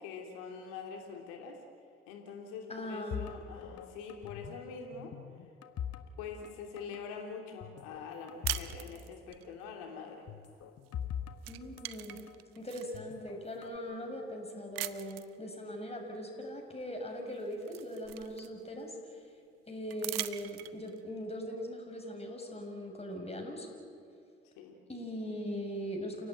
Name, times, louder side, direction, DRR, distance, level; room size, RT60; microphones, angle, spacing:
voice 1, 0.0-1.6 2.1-5.1 6.2-10.3 24.6-24.8, left 5 dB, 75° left, 3 dB, 3.0 m, -44 dB
voice 2, 2.7-3.3 11.5-12.2 12.6-18.9 19.7-23.7 24.9-26.3, equal, 20° left, 2 dB, 7.0 m, -40 dB
sound 1, 3.1-4.7 4.9-6.5 6.8-7.0 7.6-8.7 9.0-9.1 10.3-12.3 12.9-13.8, left 9 dB, 55° left, 1.7 m, -42 dB
sound 2, 8.4-9.4 10.8-11.1 11.4-13.0 13.6-13.7 14.7-15.4 16.8-16.9 17.3-18.8 19.9-21.0, right 16 dB, 85° right, 0.8 m, -41 dB
29.5 x 17.0 x 9.4 m, 2.5 s
hypercardioid pair, 45°, 29 cm